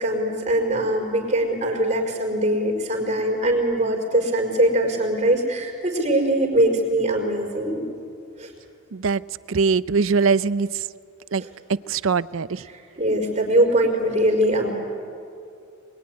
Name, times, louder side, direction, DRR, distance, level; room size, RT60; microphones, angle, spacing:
voice 1, 0.0-7.8 8.4-8.5 11.4-11.5 13.0-14.7, right 1 dB, 35° right, 0 dB, 4.9 m, -22 dB
voice 2, 9.5-10.7 11.3-11.4 11.9-12.6, right 5 dB, 75° right, 18 dB, 0.6 m, -21 dB
25.0 x 22.0 x 9.8 m, 2.5 s
head